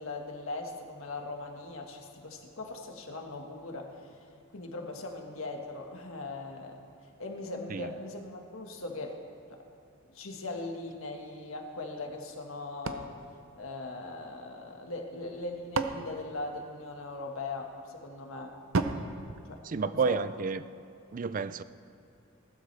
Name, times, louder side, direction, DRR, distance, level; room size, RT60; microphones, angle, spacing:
voice 1, 0.0-4.1 4.5-6.8 7.2-9.1 10.1-13.1 13.6-18.5 19.4-20.2, left 2 dB, 75° left, 1.6 m, -40 dB
sound 1, 12.8-14.4 15.2-17.2 18.7-20.3, right 3 dB, 70° right, 0.7 m, -36 dB
voice 2, 19.6-20.6 21.1-21.6, right 5 dB, 40° right, 0.4 m, -30 dB
18.5 x 12.5 x 3.4 m
head